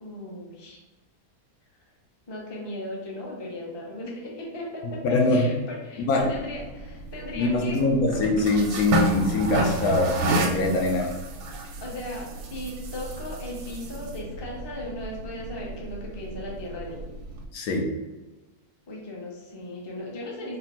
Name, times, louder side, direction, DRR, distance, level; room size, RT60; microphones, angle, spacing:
voice 1, 0.0-0.8 2.3-7.8 11.6-17.0 18.9-20.6, left 1 dB, 25° left, -2 dB, 0.6 m, -37 dB
voice 2, 5.0-5.5 6.1-6.3 7.3-11.1 17.5-17.9, left 2 dB, 70° left, 2 dB, 1.1 m, -23 dB
sound 1, 6.2-17.4, right 2 dB, 90° right, 1.2 m, -31 dB
4.1 x 2.2 x 4.2 m, 1.1 s
omnidirectional pair, 1.7 m